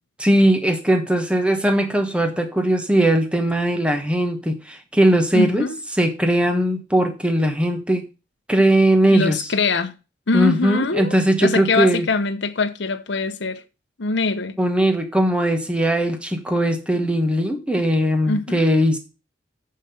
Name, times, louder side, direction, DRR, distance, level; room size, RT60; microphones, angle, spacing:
voice 1, 0.2-8.1 8.5-9.5 10.3-12.1 14.6-19.0, right 1 dB, 5° right, 1.1 m, -19 dB
voice 2, 5.3-5.8 9.1-9.9 10.3-11.1 11.4-13.6 14.0-14.5 18.2-18.7, left 3 dB, 60° left, 0.8 m, -23 dB
7.5 x 5.7 x 5.7 m
head